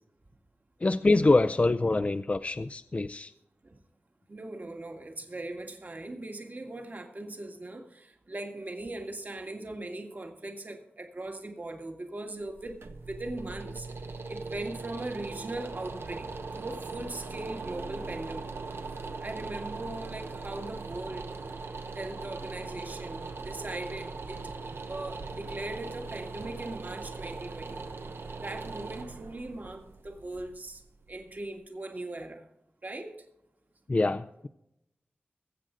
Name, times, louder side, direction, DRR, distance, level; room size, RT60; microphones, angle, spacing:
voice 1, 0.8-3.3 33.9-34.5, left 2 dB, 35° left, 0.4 m, -25 dB
voice 2, 4.3-13.9 14.3-18.5 19.2-21.4 22.0-24.4 24.9-27.9 28.4-30.8 31.1-32.5 32.8-33.3, right 2 dB, 45° right, 1.8 m, -39 dB
sound 1, 12.4-31.4, right 3 dB, 70° right, 0.9 m, -40 dB
21.5 x 7.9 x 3.8 m
wide cardioid pair, 85°, 4 cm